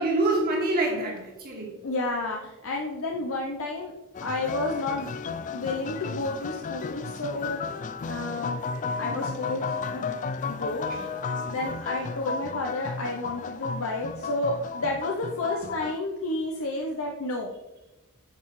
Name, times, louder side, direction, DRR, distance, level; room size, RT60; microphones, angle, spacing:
voice 1, 0.0-1.8 9.0-9.3 10.9-11.0, right 2 dB, 45° right, -1 dB, 2.0 m, -26 dB
voice 2, 1.8-3.9 4.2-5.1 5.5-7.6 8.1-8.6 9.0-10.2 10.5-11.1 11.5-17.5, left 2 dB, 65° left, 1 dB, 0.7 m, -31 dB
sound 1, 4.1-16.0, left 5 dB, 35° left, 0.3 m, -33 dB
9.6 x 5.7 x 3.1 m, 1.0 s
head